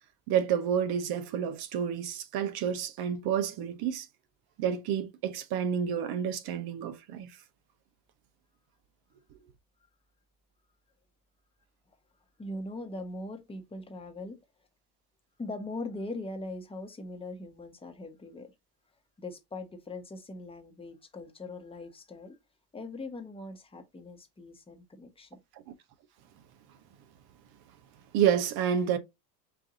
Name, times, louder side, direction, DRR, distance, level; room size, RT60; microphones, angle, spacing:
voice 1, 0.3-4.1 4.6-7.3 28.1-29.0, right 8 dB, 50° right, 0.9 m, -29 dB
voice 2, 12.4-14.4 15.4-18.5 19.2-22.4 22.7-25.4, left 2 dB, 10° left, 1.0 m, -41 dB
4.6 x 2.6 x 3.7 m
supercardioid pair, 110°, 48 cm